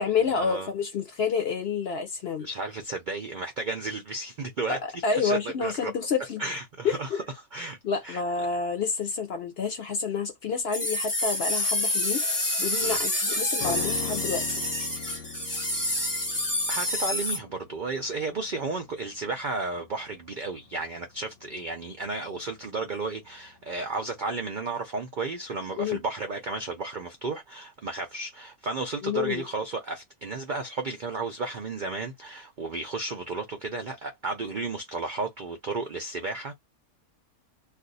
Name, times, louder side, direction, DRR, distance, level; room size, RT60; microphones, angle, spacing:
voice 1, 0.0-2.5 4.7-6.4 6.8-7.2 7.8-14.6 25.8-26.0 29.0-29.4, left 5 dB, 60° left, 0.7 m, -29 dB
voice 2, 2.4-5.9 6.4-7.2 7.5-7.8 8.0-8.2 12.8-13.0 16.7-36.5, right 3 dB, 75° right, 0.4 m, -33 dB
sound 1, 10.7-17.4, left 1 dB, 15° left, 0.9 m, -28 dB
sound 2, 13.6-23.0 23.3-23.4, left 8 dB, 90° left, 1.1 m, -41 dB
2.4 x 2.4 x 3.9 m
omnidirectional pair, 1.5 m